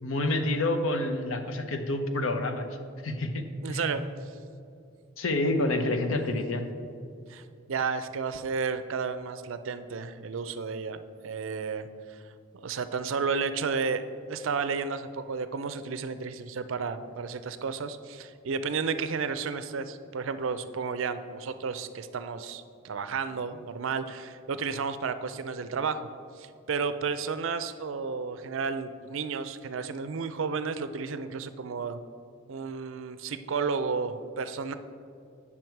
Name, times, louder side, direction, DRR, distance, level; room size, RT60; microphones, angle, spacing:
voice 1, 0.0-2.7 3.0-3.9 5.2-6.7, left 2 dB, 75° left, 7 dB, 0.7 m, -28 dB
voice 2, 3.6-4.0 7.3-11.0 11.2-12.2 12.6-14.0 14.3-26.1 26.4-32.0 32.5-34.7, right 5 dB, 70° right, 11 dB, 0.5 m, -32 dB
9.3 x 5.9 x 4.6 m, 2.4 s
head